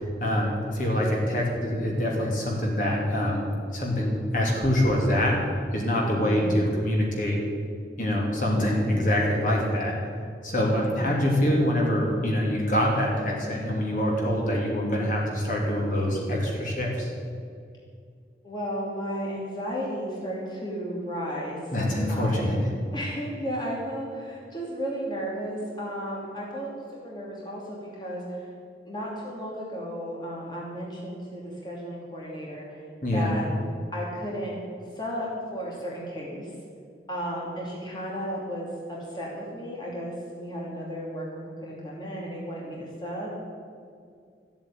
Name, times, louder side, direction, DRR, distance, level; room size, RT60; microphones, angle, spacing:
voice 1, 0.0-5.4 5.7-7.4 8.0-10.0 10.4-17.1 21.7-22.6 33.0-33.3, left 1 dB, 45° left, -2 dB, 3.0 m, -25 dB
voice 2, 6.2-6.5 10.9-11.3 18.4-22.5 22.9-26.7 27.0-28.5 28.8-33.5 33.9-34.6 34.9-36.5 37.1-43.4, equal, 25° left, -4 dB, 2.7 m, -34 dB
14.0 x 8.5 x 9.1 m, 2.2 s
head